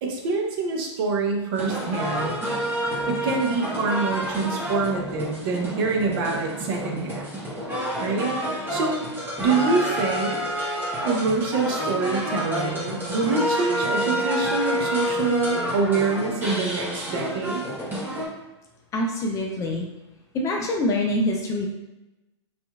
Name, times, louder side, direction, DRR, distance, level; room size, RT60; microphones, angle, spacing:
voice 1, 0.0-2.4 3.1-7.3 8.0-9.0 9.4-10.3 11.0-17.6, right 4 dB, 50° right, 1 dB, 0.6 m, -25 dB
sound 1, 1.5-18.3, equal, 15° right, 0.9 m, -28 dB
voice 2, 18.9-19.9 20.3-21.7, left 1 dB, 20° left, 0 dB, 0.3 m, -25 dB
2.7 x 2.4 x 2.3 m, 0.98 s
hypercardioid pair, 120°, 15 cm